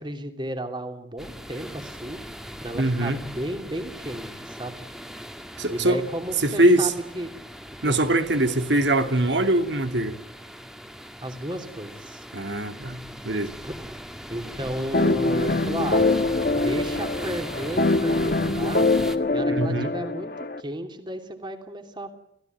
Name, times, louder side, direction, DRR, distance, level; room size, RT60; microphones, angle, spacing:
voice 1, 0.0-2.2 2.6-4.8 5.7-7.3 7.8-8.0 11.2-12.2 13.6-13.8 14.3-16.0 16.5-18.9 19.3-22.1, right 1 dB, 25° right, 3.0 m, -33 dB
sound 1, 1.2-19.2, equal, 5° right, 1.9 m, -39 dB
voice 2, 2.7-3.2 5.6-6.0 6.4-6.9 7.8-10.2 12.3-13.5 19.5-19.9, right 1 dB, 80° right, 2.6 m, -22 dB
sound 2, 14.9-20.6, left 2 dB, 50° left, 1.4 m, -23 dB
29.5 x 16.5 x 9.4 m
head